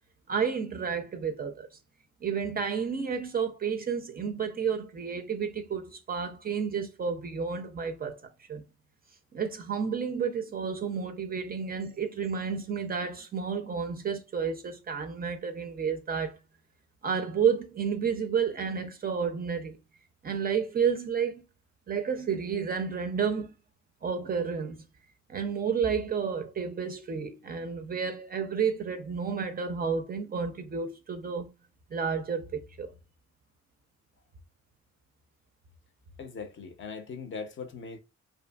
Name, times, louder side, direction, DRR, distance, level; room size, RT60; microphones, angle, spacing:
voice 1, 0.3-1.7 2.2-8.2 8.5-8.6 9.3-16.4 17.0-19.8 20.2-21.4 21.9-23.5 24.0-24.8 25.3-31.5 31.9-32.9, right 6 dB, 30° right, 0.4 m, -31 dB
voice 2, 36.2-38.0, left 5 dB, 40° left, 0.5 m, -40 dB
2.6 x 2.4 x 2.2 m
cardioid pair, 90°, 30 cm